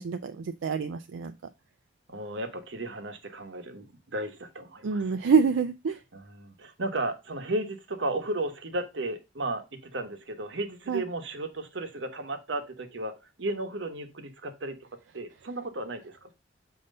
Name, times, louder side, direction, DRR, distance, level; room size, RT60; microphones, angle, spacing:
voice 1, 0.0-1.3 4.8-6.0 10.9-11.0, right 5 dB, 85° right, 0.4 m, -26 dB
voice 2, 2.1-5.1 6.1-14.9 15.1-16.3, right 2 dB, 70° right, 1.0 m, -34 dB
6.5 x 2.8 x 5.2 m
head